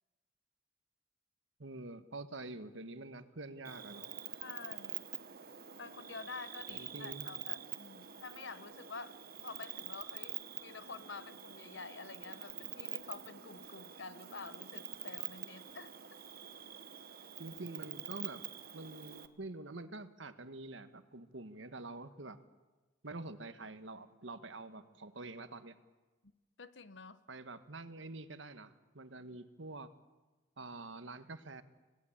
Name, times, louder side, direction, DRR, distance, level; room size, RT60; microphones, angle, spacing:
voice 1, 1.6-4.1 6.7-7.4 17.4-22.4 23.0-25.8 27.3-29.9 30.6-31.6, right 2 dB, 75° right, 11 dB, 1.4 m, -47 dB
Cricket, 3.6-19.3, right 11 dB, 50° right, 1.3 m, -46 dB
voice 2, 4.4-5.1 5.8-16.2 26.2-26.3 26.6-27.2, left 4 dB, 65° left, 14 dB, 1.1 m, -49 dB
26.5 x 17.0 x 8.7 m, 1.2 s
head